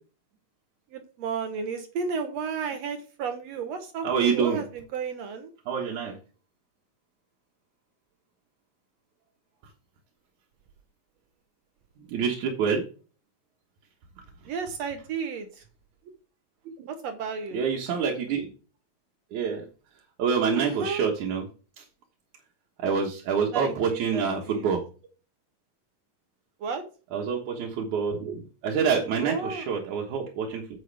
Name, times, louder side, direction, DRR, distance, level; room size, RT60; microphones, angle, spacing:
voice 1, 0.9-5.5 14.5-15.6 16.9-17.7 20.6-21.0 23.5-24.7 26.6-26.8 29.2-29.7, right 5 dB, 65° right, 7 dB, 2.2 m, -33 dB
voice 2, 4.0-4.6 5.7-6.2 12.0-12.8 16.8-16.9 17.5-18.5 19.3-19.6 20.2-21.4 21.8-21.9 22.8-24.9 27.1-30.6, right 6 dB, 85° right, 0 dB, 2.8 m, -27 dB
9.3 x 7.8 x 3.4 m, 0.35 s
omnidirectional pair, 3.3 m